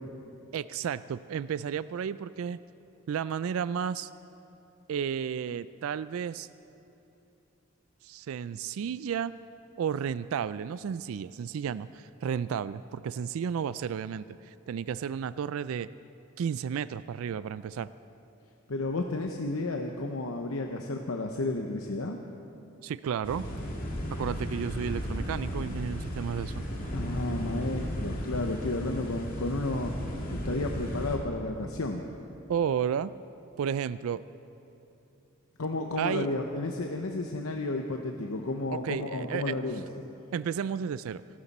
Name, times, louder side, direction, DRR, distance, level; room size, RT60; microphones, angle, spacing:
voice 1, 0.5-2.6 3.1-4.1 4.9-6.5 8.0-9.3 9.8-15.9 16.4-17.9 22.8-23.4 24.1-26.6 32.5-33.1 33.6-34.2 36.0-36.3 38.7-39.6 40.3-41.2, right 7 dB, 75° right, 16 dB, 0.3 m, -32 dB
voice 2, 18.7-22.2 26.9-29.9 30.3-32.0 35.6-39.9, left 2 dB, 80° left, 3 dB, 0.9 m, -32 dB
sound 1, 23.2-31.2, equal, 40° left, 2.4 m, -35 dB
25.0 x 12.5 x 4.2 m, 3.0 s
head